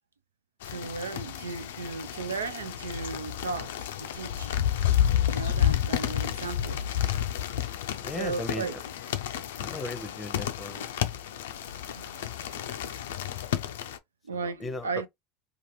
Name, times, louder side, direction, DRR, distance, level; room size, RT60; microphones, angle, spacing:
sound 1, 0.6-14.0, left 10 dB, 75° left, 0.4 m, -30 dB
voice 1, 0.7-3.7 4.0-4.5 5.3-6.9 8.1-8.8 9.7-9.8 11.7-13.4 14.2-15.1, right 4 dB, 90° right, 0.4 m, -36 dB
voice 2, 8.0-8.7 9.6-10.9 14.3-15.0, left 2 dB, 25° left, 0.7 m, -37 dB
2.8 x 2.4 x 3.2 m
hypercardioid pair, 80°, 0 cm